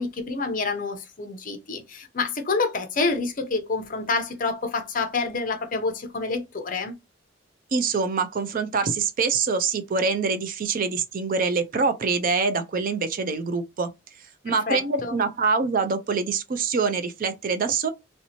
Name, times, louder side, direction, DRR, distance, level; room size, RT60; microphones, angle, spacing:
voice 1, 0.0-6.9 14.5-15.1, left 3 dB, 45° left, 0.7 m, -28 dB
voice 2, 7.7-13.9 14.4-17.9, right 4 dB, 45° right, 0.4 m, -25 dB
3.1 x 2.7 x 2.9 m
head